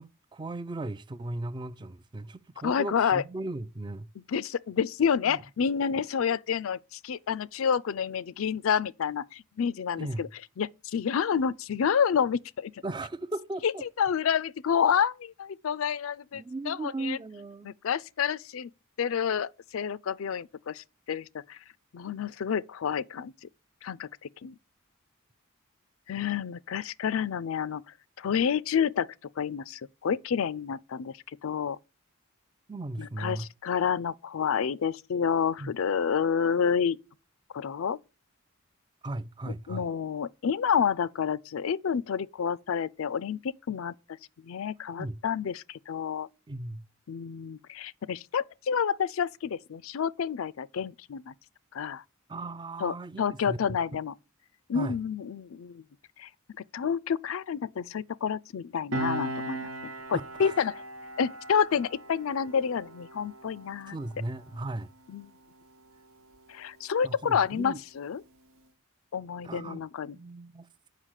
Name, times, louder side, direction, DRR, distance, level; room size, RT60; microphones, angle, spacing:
voice 1, 0.0-4.1 5.3-5.4 5.9-6.0 10.0-10.3 12.8-13.8 16.3-17.7 32.7-33.5 35.6-35.7 39.0-39.9 45.0-45.2 46.5-46.8 52.3-53.6 54.7-55.0 60.1-60.5 63.9-64.9 67.0-67.8 69.4-69.8 70.1-70.7, right 2 dB, 20° right, 0.4 m, -37 dB
voice 2, 2.6-3.2 4.3-10.3 10.6-12.7 13.6-13.7 14.0-17.2 17.6-18.7 19.0-21.6 21.9-23.3 23.8-24.6 26.1-27.8 28.2-31.1 31.4-31.8 33.0-37.0 37.5-38.0 39.7-44.0 44.4-46.3 47.1-51.3 51.7-52.0 52.8-54.1 54.7-55.8 56.2-56.3 56.7-59.7 60.1-60.8 61.2-64.0 65.1-65.3 66.5-68.2 69.1-70.2, left 7 dB, 75° left, 0.4 m, -29 dB
Piano, 58.9-65.9 66.2-66.4, right 1 dB, 80° right, 1.1 m, -39 dB
7.4 x 5.5 x 6.4 m
head